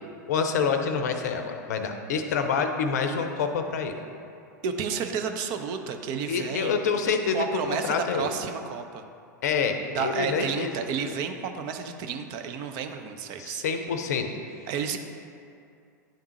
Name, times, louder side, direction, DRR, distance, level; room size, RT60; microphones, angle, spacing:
voice 1, 0.3-3.9 6.3-8.3 9.4-10.7 11.0-11.1 13.4-14.3, left 5 dB, 65° left, 6 dB, 0.6 m, -27 dB
voice 2, 4.6-6.8 7.3-9.0 9.9-13.6 14.7-15.0, right 6 dB, 45° right, 6 dB, 0.5 m, -31 dB
10.0 x 3.6 x 2.9 m, 2.4 s
figure-of-eight pair, 90°, 10 cm